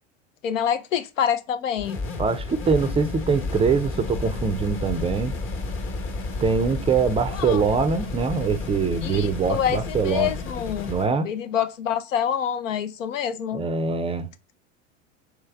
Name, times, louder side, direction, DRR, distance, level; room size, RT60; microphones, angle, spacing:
voice 1, 0.4-2.0 7.3-7.6 9.0-10.9 11.2-13.6, left 9 dB, 85° left, 0.6 m, -26 dB
sound 1, 1.8-11.1, left 3 dB, 35° left, 1.1 m, -31 dB
voice 2, 2.2-5.3 6.4-10.3 10.9-11.3 13.5-14.3, right 5 dB, 15° right, 0.4 m, -23 dB
3.2 x 3.2 x 3.4 m
hypercardioid pair, 90°, 37 cm